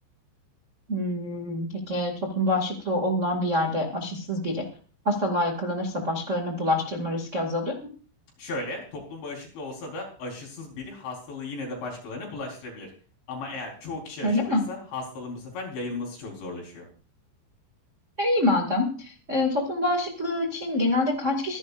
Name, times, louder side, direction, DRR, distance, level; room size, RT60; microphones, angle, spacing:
voice 1, 0.9-4.6 5.0-7.7 14.2-14.6 18.2-21.6, left 1 dB, 35° right, 1 dB, 1.1 m, -26 dB
voice 2, 8.4-12.9 13.3-16.8, left 2 dB, 65° left, 0 dB, 6.6 m, -36 dB
25.0 x 11.0 x 2.6 m, 0.39 s
omnidirectional pair, 5.5 m